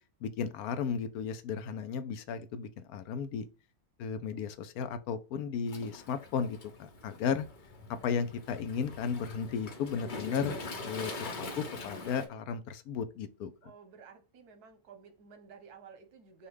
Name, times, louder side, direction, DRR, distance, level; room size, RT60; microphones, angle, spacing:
voice 1, 0.2-3.4 4.0-7.5 8.0-10.6 10.8-13.5, left 6 dB, 75° left, 1.1 m, -34 dB
Waves surf, 5.7-12.3, left 2 dB, 40° left, 0.9 m, -43 dB
voice 2, 13.6-16.5, right 6 dB, 90° right, 1.4 m, -53 dB
5.5 x 2.4 x 3.3 m
omnidirectional pair, 1.6 m